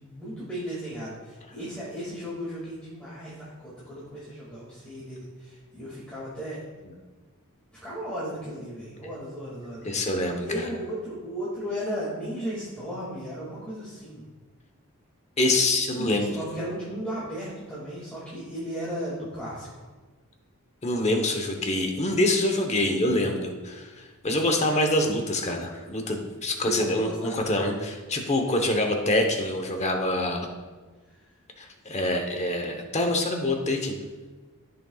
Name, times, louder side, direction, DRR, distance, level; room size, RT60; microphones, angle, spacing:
voice 1, 0.0-6.6 7.8-9.8 10.4-14.2 15.9-19.7 26.6-27.5, equal, 5° left, -10 dB, 2.3 m, -35 dB
voice 2, 9.8-10.7 15.4-16.3 20.8-23.9 24.2-30.5 31.6-34.0, left 1 dB, 30° left, 4 dB, 1.0 m, -25 dB
14.5 x 6.7 x 2.4 m, 1.3 s
head